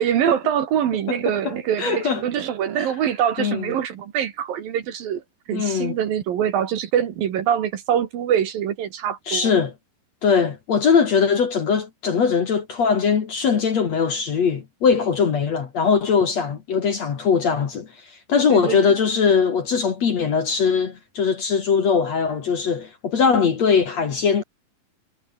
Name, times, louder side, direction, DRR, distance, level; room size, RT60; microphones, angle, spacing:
voice 1, 0.0-5.2 5.5-9.5 18.5-18.9, right 9 dB, 60° right, 3.2 m, -24 dB
voice 2, 1.4-2.2 3.4-3.6 5.5-6.0 9.3-9.7 10.2-17.9 18.3-24.4, left 6 dB, 45° left, 2.7 m, -21 dB
omnidirectional pair, 4.9 m